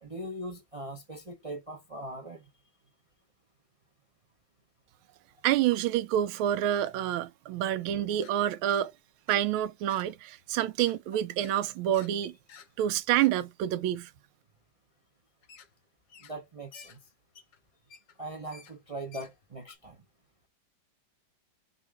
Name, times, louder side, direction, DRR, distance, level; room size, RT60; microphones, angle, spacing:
voice 1, 0.0-2.4 16.2-17.0 18.2-20.0, right 1 dB, 50° right, 0.4 m, -40 dB
voice 2, 5.4-8.9 9.3-12.3 12.8-14.1, right 12 dB, 85° right, 1.4 m, -28 dB
sound 1, 8.2-8.3 8.7-8.8 9.3-9.4 9.9-10.1 10.4-11.0 11.4-11.6 11.9-12.1 12.5-12.7 13.2-13.3 15.4-15.7 16.1-16.5 16.7-19.8, left 6 dB, 65° left, 1.5 m, -52 dB
5.4 x 2.5 x 3.4 m
omnidirectional pair, 2.2 m